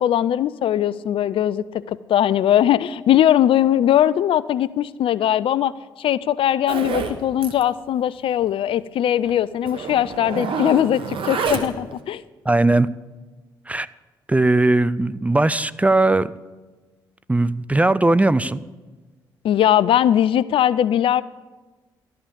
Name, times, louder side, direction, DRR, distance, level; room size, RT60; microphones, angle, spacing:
voice 1, 0.0-12.2 19.4-21.2, left 11 dB, 60° left, 18 dB, 0.4 m, -20 dB
Zipper (clothing), 6.7-7.2 7.4-7.6 7.9-8.0 8.4-8.5 9.2-9.3 9.6-11.9, right 5 dB, 55° right, 1.1 m, -27 dB
voice 2, 12.5-12.9 13.7-13.9 14.3-16.3 17.3-18.6, right 2 dB, 15° right, 18 dB, 0.4 m, -18 dB
12.5 x 5.8 x 8.6 m, 1.2 s
hypercardioid pair, 40°, 10 cm